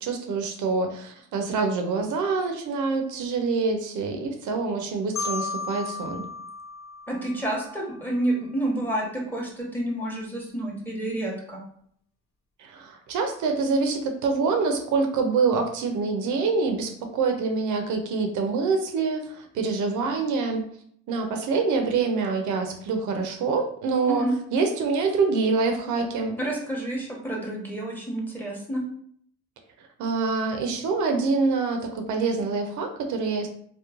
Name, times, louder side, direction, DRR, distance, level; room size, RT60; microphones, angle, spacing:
voice 1, 0.0-6.3 12.6-20.6 21.1-26.4 30.0-33.5, right 4 dB, 80° right, 5 dB, 0.5 m, -26 dB
Marimba xylophone, 5.2-8.0, left 4 dB, 45° left, 1.0 m, -34 dB
voice 2, 7.1-11.6 24.1-24.3 26.4-28.8, right 1 dB, 5° left, -2 dB, 0.9 m, -29 dB
2.9 x 2.1 x 2.4 m, 0.64 s
cardioid pair, 90°, 30 cm